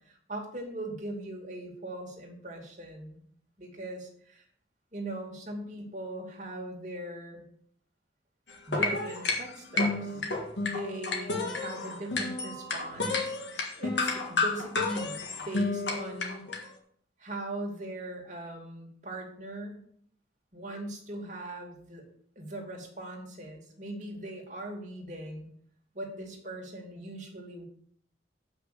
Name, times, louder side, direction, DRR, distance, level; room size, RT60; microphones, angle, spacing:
voice 1, 0.0-3.3 3.6-4.4 4.9-7.4 8.7-10.2 10.7-16.4 17.2-19.8 20.5-22.0 22.4-25.5 25.9-27.6, right 1 dB, 45° right, 0 dB, 2.4 m, -40 dB
sound 1, 8.5-16.6, left 3 dB, 85° left, 1.7 m, -31 dB
7.7 x 5.9 x 6.8 m, 0.63 s
head